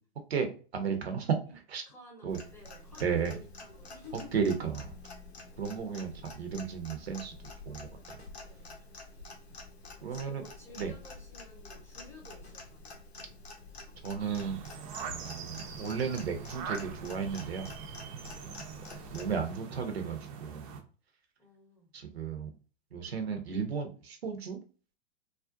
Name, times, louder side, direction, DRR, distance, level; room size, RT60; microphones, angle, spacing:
voice 1, 0.3-1.4 1.7-1.8 2.2-2.4 3.0-3.3 4.3-4.9 5.6-7.3 7.7-8.2 10.0-10.4 10.8-10.9 14.0-14.6 15.0-17.7 19.1-20.7 21.9-22.5 22.9-24.6, right 6 dB, 75° right, 6 dB, 0.7 m, -34 dB
voice 2, 1.9-4.4 8.3-8.8 10.0-13.0 18.3-18.7 21.4-21.9, left 2 dB, 10° left, -1 dB, 0.7 m, -53 dB
Clock, 2.3-19.4, left 3 dB, 90° left, 0.6 m, -48 dB
sound 1, 14.2-20.8, right 6 dB, 35° right, 0.4 m, -43 dB
2.4 x 2.1 x 2.5 m, 0.38 s
figure-of-eight pair, 100°, 31 cm